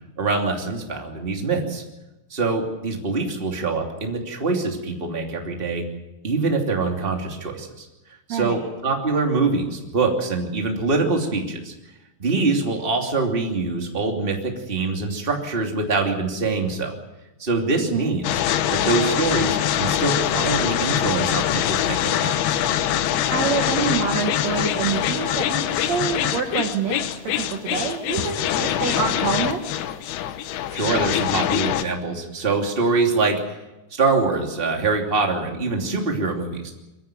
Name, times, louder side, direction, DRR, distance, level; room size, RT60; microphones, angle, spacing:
voice 1, 0.2-1.8 2.3-5.8 6.2-7.9 8.3-11.7 12.2-14.4 14.7-16.9 17.4-18.4 18.7-21.4 21.7-22.4 30.7-33.6 34.0-36.7, right 3 dB, 15° right, 1 dB, 1.9 m, -24 dB
voice 2, 8.3-8.7 17.8-18.1 23.3-29.6, right 6 dB, 70° right, 3 dB, 1.6 m, -26 dB
sound 1, 18.2-31.8, left 11 dB, 70° left, 2.6 m, -23 dB
23.0 x 15.5 x 9.1 m, 1.0 s
omnidirectional pair, 5.4 m